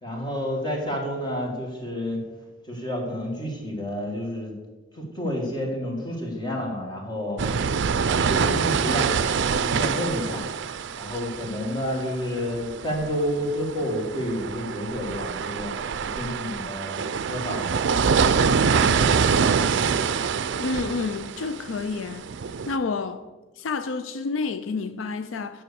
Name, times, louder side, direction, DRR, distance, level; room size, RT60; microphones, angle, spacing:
voice 1, 0.0-2.2 2.6-4.6 4.9-7.4 8.0-9.1 9.6-10.5 11.0-15.7 16.0-18.1 18.7-19.2, equal, 25° left, 1.9 m, -30 dB
sound 1, 7.4-22.8, right 6 dB, 65° right, 0.4 m, -25 dB
voice 2, 20.6-22.3 22.7-23.2 23.6-25.6, left 4 dB, 75° left, 0.4 m, -29 dB
7.6 x 6.1 x 6.9 m
head